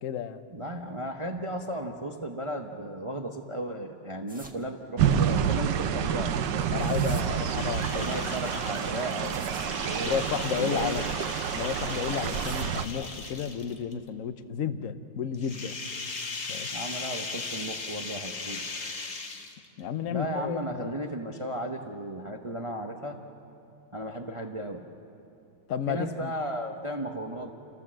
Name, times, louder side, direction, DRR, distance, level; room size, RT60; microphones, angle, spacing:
voice 1, 0.0-0.5 6.7-8.3 10.0-11.1 11.5-15.8 16.5-16.7 19.8-21.0 25.7-26.3, left 8 dB, 60° left, 11 dB, 0.8 m, -32 dB
voice 2, 0.5-6.4 7.9-11.0 16.7-18.8 20.1-23.2 23.9-24.8 25.9-27.5, right 1 dB, 50° right, 4 dB, 0.3 m, -35 dB
sound 1, 4.3-4.6 6.4-7.2 9.1-9.8 12.0-12.8, right 1 dB, 5° right, 1.1 m, -46 dB
sound 2, 5.0-12.8, right 8 dB, 65° right, 1.3 m, -28 dB
sound 3, 6.2-13.9 15.3-19.8, left 3 dB, 40° left, 1.3 m, -39 dB
29.5 x 14.5 x 7.6 m, 2.7 s
omnidirectional pair, 2.3 m